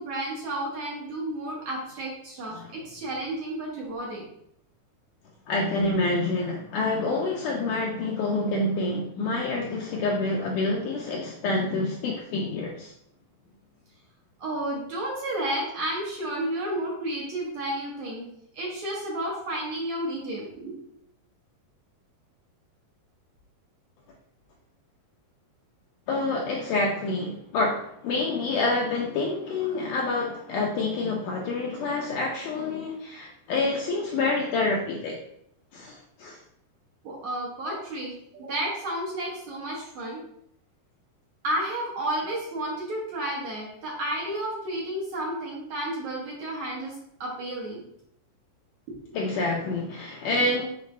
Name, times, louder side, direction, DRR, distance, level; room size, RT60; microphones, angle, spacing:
voice 1, 0.0-4.3 14.4-18.3 18.5-20.7 37.0-40.2 41.4-47.9 49.0-49.1, right 1 dB, 60° right, -3 dB, 2.1 m, -32 dB
voice 2, 5.5-12.9 26.1-35.2 35.7-36.4 49.1-50.6, left 2 dB, 80° left, -1 dB, 1.9 m, -27 dB
7.1 x 5.0 x 3.2 m, 0.73 s
omnidirectional pair, 4.4 m